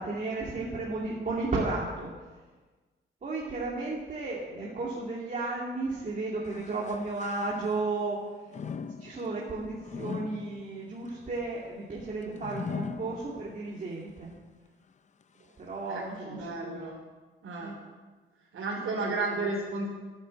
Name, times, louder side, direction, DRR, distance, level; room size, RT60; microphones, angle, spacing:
voice 1, 0.0-2.2 3.2-8.5 9.0-14.3 15.6-16.8 17.6-17.8 18.8-18.9 19.4-19.5, right 3 dB, 40° right, -4 dB, 2.7 m, -34 dB
sound 1, 6.4-8.0 8.5-13.8 14.3-14.4 15.2-15.3, left 6 dB, 35° left, 0.6 m, -41 dB
voice 2, 15.9-17.0 17.4-17.7 18.5-19.9, right 3 dB, 80° right, -3 dB, 3.5 m, -33 dB
14.5 x 10.5 x 7.8 m, 1.3 s
wide cardioid pair, 165°, 21 cm